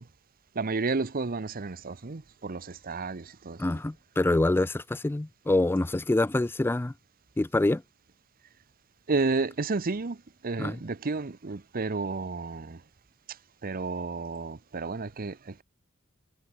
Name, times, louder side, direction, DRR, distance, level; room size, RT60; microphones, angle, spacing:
voice 1, 0.5-3.8 9.1-12.8 13.6-15.6, right 3 dB, 45° right, 0.8 m, -31 dB
voice 2, 3.6-6.9 7.4-7.8 10.6-10.8, left 2 dB, 10° left, 0.3 m, -26 dB
head